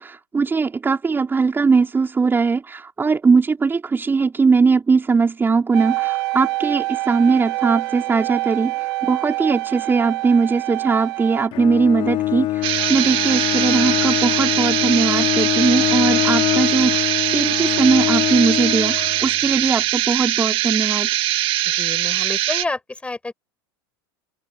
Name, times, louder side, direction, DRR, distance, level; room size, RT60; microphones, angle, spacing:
voice 1, 0.0-21.1, right 4 dB, 15° right, 4.5 m, -20 dB
sound 1, 5.7-11.5, right 20 dB, 75° right, 3.4 m, -26 dB
Bowed string instrument, 11.5-19.7, left 14 dB, 45° left, 4.8 m, -23 dB
sound 2, 12.6-22.7, right 14 dB, 45° right, 2.1 m, -22 dB
voice 2, 21.7-23.3, left 2 dB, 10° left, 8.0 m, -29 dB
open air
supercardioid pair, 120°, 13 cm